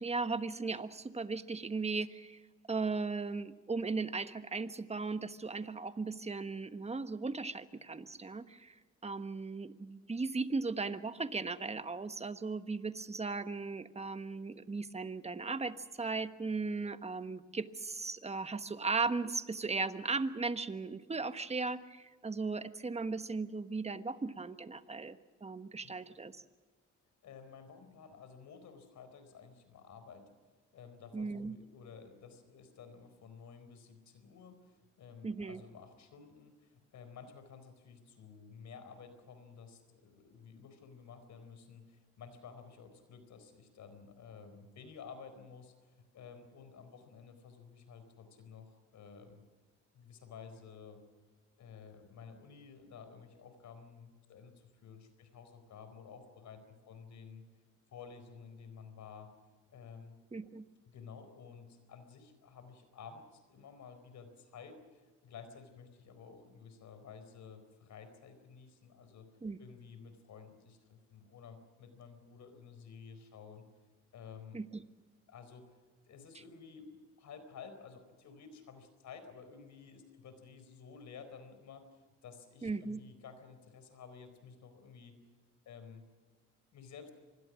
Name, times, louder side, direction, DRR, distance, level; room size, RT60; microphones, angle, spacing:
voice 1, 0.0-2.4 2.7-8.7 9.0-26.4 31.1-31.6 35.2-35.6 60.3-60.6 69.4-69.6 74.5-74.8 82.6-83.0, right 4 dB, 20° right, 11 dB, 1.3 m, -37 dB
voice 2, 27.2-30.3 30.7-49.4 49.9-51.0 51.6-57.4 57.9-59.3 59.7-60.2 60.9-69.3 69.6-73.6 74.1-74.6 75.3-75.8 76.1-85.2 85.7-86.0 86.7-87.1, left 6 dB, 70° left, 10 dB, 4.5 m, -53 dB
26.0 x 21.0 x 6.3 m, 1.4 s
cardioid pair, 90°, 30 cm